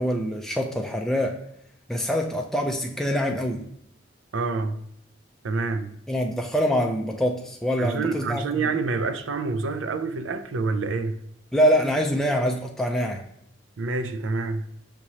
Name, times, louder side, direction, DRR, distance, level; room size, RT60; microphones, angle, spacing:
voice 1, 0.0-1.4 1.9-3.7 6.1-8.4 11.5-13.3, equal, ahead, 0.3 m, -24 dB
voice 2, 4.3-4.8 5.4-6.0 7.8-11.2 13.8-14.7, right 3 dB, 90° right, 0.5 m, -27 dB
5.9 x 3.0 x 2.7 m
head